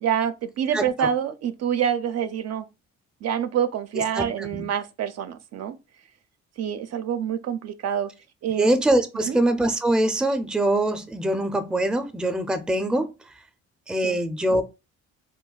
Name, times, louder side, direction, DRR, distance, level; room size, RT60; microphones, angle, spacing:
voice 1, 0.0-2.7 3.2-5.8 6.6-8.1 8.4-8.7 9.2-9.4 14.0-14.2, right 8 dB, 60° right, 0.4 m, -26 dB
voice 2, 0.7-1.1 4.2-4.6 8.6-13.1 13.9-14.6, right 1 dB, 5° right, 0.4 m, -23 dB
2.3 x 2.2 x 3.9 m
cardioid pair, 90°, 30 cm